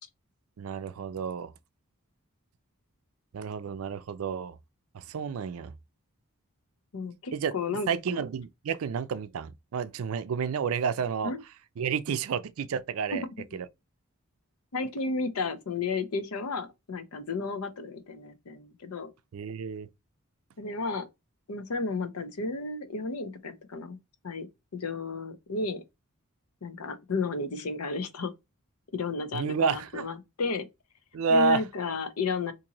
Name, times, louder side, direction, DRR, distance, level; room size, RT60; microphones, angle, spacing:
voice 1, 0.6-1.5 3.3-4.6 4.9-5.7 7.3-11.3 11.8-13.3 13.5-13.7 19.3-19.9 29.3-30.1 31.1-31.6, right 5 dB, 75° right, 0.4 m, -30 dB
voice 2, 6.9-8.2 11.2-11.4 14.7-19.1 20.6-21.1 21.5-24.0 24.2-24.5 24.7-25.8 26.6-28.3 28.9-30.7 31.3-32.5, left 4 dB, 90° left, 0.6 m, -32 dB
2.9 x 2.6 x 3.7 m
head